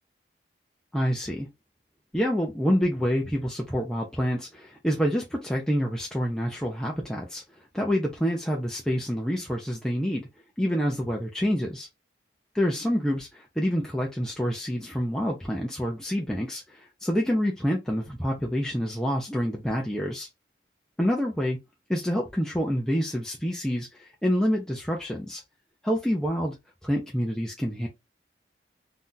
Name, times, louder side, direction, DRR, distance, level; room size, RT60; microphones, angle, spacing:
voice 1, 0.9-1.5 2.1-7.4 7.7-10.3 10.6-11.9 12.5-20.3 21.0-21.6 21.9-25.4 25.8-26.6 26.8-27.9, equal, 5° left, 0.5 m, -27 dB
2.7 x 2.4 x 3.6 m
head